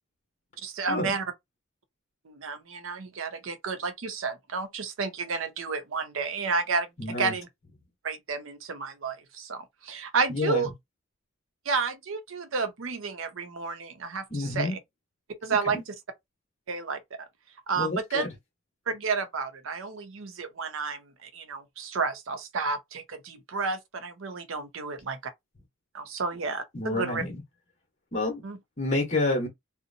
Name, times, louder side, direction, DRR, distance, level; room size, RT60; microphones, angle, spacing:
voice 1, 0.6-1.3 2.3-6.9 7.2-7.5 8.0-10.7 11.7-14.8 15.4-15.9 16.7-17.3 17.7-18.3 18.9-25.2 25.9-27.2 28.4-28.6, right 4 dB, 80° right, 0.6 m, -31 dB
voice 2, 7.0-7.3 10.3-10.7 14.3-14.7 15.7-15.8 17.7-18.3 26.7-27.4 28.1-28.4 28.8-29.5, left 2 dB, 35° left, 1.0 m, -29 dB
2.7 x 2.0 x 2.6 m
head